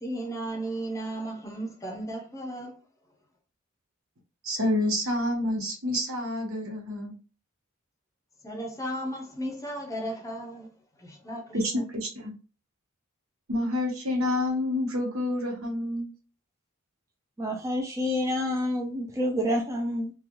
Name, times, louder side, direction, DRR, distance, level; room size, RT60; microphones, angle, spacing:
voice 1, 0.0-2.8 8.4-10.7 11.0-11.8, right 1 dB, 15° left, 0.7 m, -35 dB
voice 2, 4.4-7.1 11.5-12.3 13.5-16.1, left 1 dB, 75° right, 1.1 m, -28 dB
voice 3, 17.4-20.1, left 1 dB, 15° right, 0.5 m, -28 dB
3.0 x 2.3 x 2.6 m
head